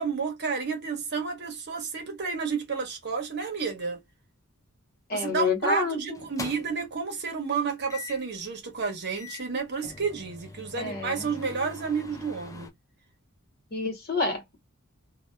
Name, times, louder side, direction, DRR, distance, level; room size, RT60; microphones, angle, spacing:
voice 1, 0.0-4.0 5.1-12.7, right 5 dB, 50° right, 1.0 m, -31 dB
voice 2, 5.1-6.2 10.8-11.3 13.7-14.6, left 3 dB, 45° left, 1.0 m, -28 dB
sound 1, 5.3-5.5 6.1-6.9 7.9-8.3 8.8-8.9 9.2-12.7, left 4 dB, 15° left, 0.4 m, -43 dB
2.7 x 2.2 x 2.2 m
head